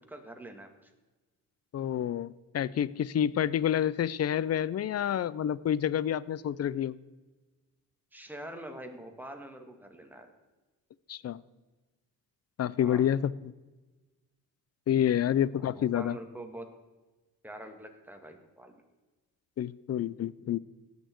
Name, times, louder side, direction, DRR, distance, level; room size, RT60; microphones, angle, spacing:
voice 1, 0.1-0.9 8.1-10.3 12.8-13.1 15.6-16.7 17.4-18.8, right 1 dB, 5° right, 4 dB, 2.0 m, -45 dB
voice 2, 1.7-7.0 11.1-11.4 12.6-13.5 14.9-16.2 19.6-20.6, left 10 dB, 45° left, 20 dB, 0.5 m, -28 dB
18.0 x 6.8 x 4.6 m, 1.2 s
cardioid pair, 80°, 37 cm